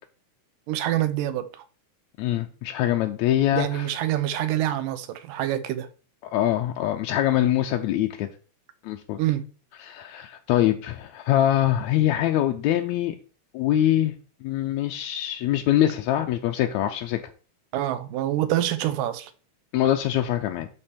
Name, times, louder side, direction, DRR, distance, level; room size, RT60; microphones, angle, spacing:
voice 1, 0.7-1.6 3.5-5.9 9.2-9.4 17.7-19.3, right 13 dB, 90° right, 2.4 m, -26 dB
voice 2, 2.2-3.9 6.2-8.3 8.8-9.2 9.8-13.2 13.5-14.1 14.4-17.2 19.7-20.7, left 12 dB, 80° left, 1.7 m, -23 dB
11.0 x 4.5 x 4.3 m
omnidirectional pair, 3.8 m